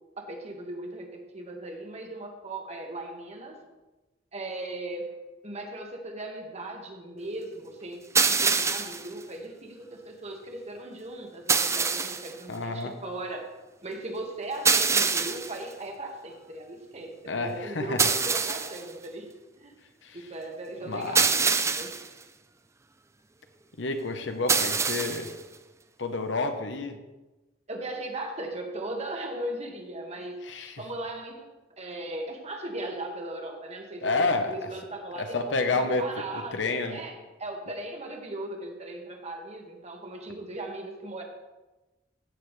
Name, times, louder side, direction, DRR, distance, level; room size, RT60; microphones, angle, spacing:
voice 1, 0.2-3.6 4.3-5.2 5.4-13.5 13.8-19.8 20.1-21.9 27.7-30.4 30.8-31.5 31.8-37.1 37.4-41.2, right 1 dB, 35° right, 2 dB, 1.5 m, -38 dB
sound 1, 8.1-9.1 11.5-12.3 14.6-15.6 18.0-18.8 21.1-22.1 24.5-25.3, right 5 dB, 15° right, 0.4 m, -24 dB
voice 2, 12.5-13.0 17.3-18.0 20.0-20.2 20.8-21.2 23.8-25.3 26.0-27.0 30.4-30.7 34.0-34.5 35.2-37.0, left 3 dB, 75° left, 7 dB, 0.9 m, -29 dB
15.5 x 6.9 x 3.2 m, 1.1 s
head